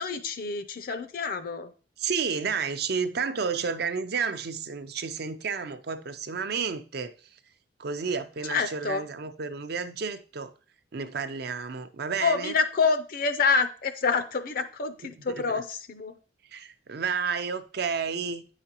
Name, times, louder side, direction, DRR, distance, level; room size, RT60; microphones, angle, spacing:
voice 1, 0.0-1.7 8.5-9.0 12.2-16.1, left 5 dB, 50° left, 0.5 m, -27 dB
voice 2, 2.0-7.4 7.8-10.5 10.9-12.5 15.0-15.6 16.5-18.5, right 5 dB, 60° right, 0.5 m, -31 dB
8.8 x 4.9 x 2.9 m
head